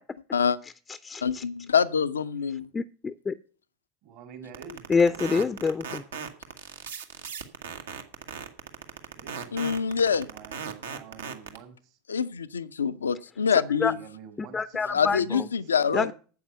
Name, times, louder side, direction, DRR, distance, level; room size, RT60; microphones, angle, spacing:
voice 1, 0.6-1.4 2.7-3.3 4.9-6.0 13.8-13.9 14.4-15.5 15.9-16.1, left 5 dB, 20° left, 0.5 m, -27 dB
voice 2, 1.2-2.7 9.5-10.3 12.1-13.9 14.9-16.1, left 7 dB, 85° left, 0.5 m, -25 dB
voice 3, 4.0-5.5 9.1-12.0 13.7-15.5, right 7 dB, 55° right, 2.0 m, -47 dB
sound 1, 4.5-11.6, right 7 dB, 80° right, 1.4 m, -36 dB
9.4 x 7.9 x 6.9 m
figure-of-eight pair, 75°, 0 cm